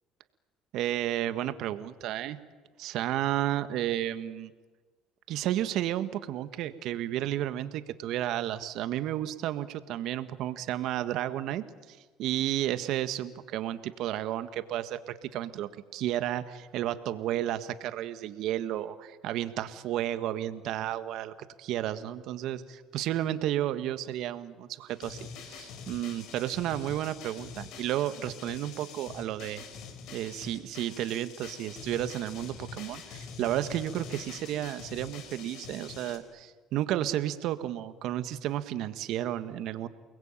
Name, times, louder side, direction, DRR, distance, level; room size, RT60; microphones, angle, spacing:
voice 1, 0.7-2.4 2.8-4.5 5.3-29.6 30.1-39.9, right 12 dB, 70° right, 11 dB, 1.6 m, -32 dB
sound 1, 24.9-36.2, left 6 dB, 70° left, 4.4 m, -45 dB
29.5 x 21.0 x 9.0 m, 1.3 s
supercardioid pair, 75°, 0 cm